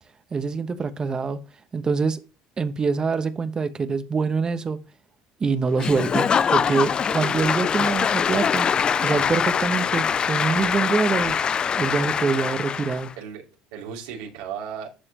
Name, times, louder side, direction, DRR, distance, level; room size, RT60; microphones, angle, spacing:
voice 1, 0.3-1.4 1.7-2.2 2.6-4.8 5.4-8.7 9.0-11.4 11.8-13.1, right 5 dB, 30° right, 1.2 m, -25 dB
Applause / Crowd, 5.8-13.1, left 7 dB, 35° left, 0.4 m, -23 dB
voice 2, 13.2-14.9, right 7 dB, 85° right, 3.0 m, -35 dB
11.5 x 4.8 x 3.0 m
supercardioid pair, 85°, 3 cm